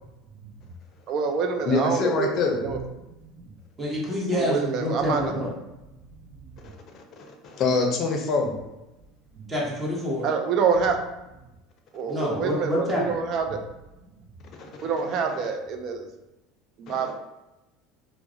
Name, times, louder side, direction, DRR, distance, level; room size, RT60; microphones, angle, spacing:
voice 1, 1.1-2.8 3.4-3.5 4.3-5.3 9.4-9.5 10.2-11.0 11.9-13.6 14.8-16.1 16.8-17.1, right 5 dB, 55° right, 5 dB, 0.3 m, -26 dB
voice 2, 1.7-2.6 6.6-8.5 14.6-14.9 16.9-17.1, left 3 dB, 50° left, 3 dB, 0.5 m, -26 dB
voice 3, 3.8-5.5 9.5-10.3 12.1-13.2, left 1 dB, 25° right, -3 dB, 0.9 m, -27 dB
2.2 x 2.0 x 2.6 m, 0.97 s
hypercardioid pair, 85°, 0 cm